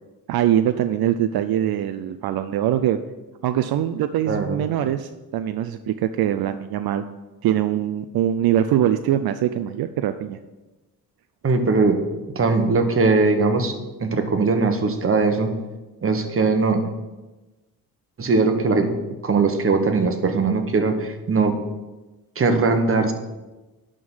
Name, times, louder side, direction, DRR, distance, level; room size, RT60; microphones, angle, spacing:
voice 1, 0.3-3.0 3.4-7.0 7.4-10.4, right 11 dB, 75° right, 9 dB, 0.5 m, -22 dB
voice 2, 4.3-4.6 11.4-12.0 12.3-13.7 14.0-15.5 16.0-16.8 18.2-18.9 19.2-21.6 22.4-23.1, right 4 dB, 35° right, 6 dB, 1.1 m, -20 dB
11.0 x 3.8 x 6.2 m, 1.1 s
cardioid pair, 110°, 38 cm